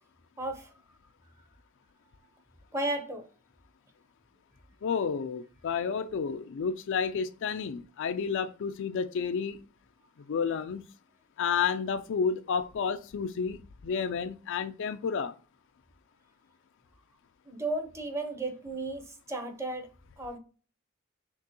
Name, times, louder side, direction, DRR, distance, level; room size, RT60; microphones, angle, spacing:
voice 1, 0.4-0.7 2.7-3.2 17.5-19.9 20.2-20.4, right 2 dB, 15° right, 0.8 m, -34 dB
voice 2, 4.8-9.6 10.3-10.8 11.4-15.3, left 6 dB, 60° left, 0.4 m, -31 dB
5.9 x 3.0 x 2.8 m
head